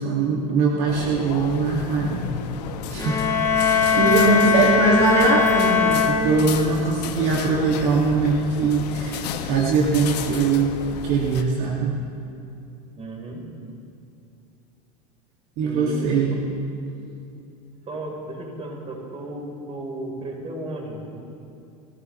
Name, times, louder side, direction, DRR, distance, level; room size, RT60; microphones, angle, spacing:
voice 1, 0.0-2.3 2.9-3.2 3.6-11.9 15.6-16.4, right 4 dB, 60° right, -3 dB, 2.2 m, -21 dB
sound 1, 0.9-11.4, left 8 dB, 85° left, 1.3 m, -33 dB
sound 2, 3.0-6.8, left 5 dB, 15° left, 2.6 m, -21 dB
voice 2, 13.0-13.4 15.6-16.4 17.9-21.3, right 1 dB, 30° right, 0 dB, 4.1 m, -34 dB
29.5 x 14.0 x 3.2 m, 2.7 s
supercardioid pair, 105°, 20 cm